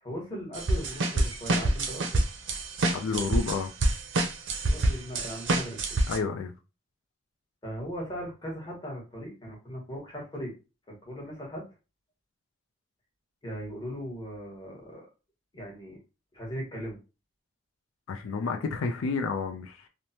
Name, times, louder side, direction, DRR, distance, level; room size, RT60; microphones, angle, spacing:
voice 1, 0.0-2.2 4.6-6.0 7.6-10.5 11.0-11.6 13.4-15.1 15.5-16.0 16.3-17.0, equal, 20° left, 1.1 m, -38 dB
sound 1, 0.5-6.2, right 2 dB, 70° right, 0.5 m, -27 dB
voice 2, 2.9-3.7 6.1-6.5 18.1-19.9, left 4 dB, 90° left, 0.4 m, -30 dB
3.1 x 2.1 x 2.7 m
head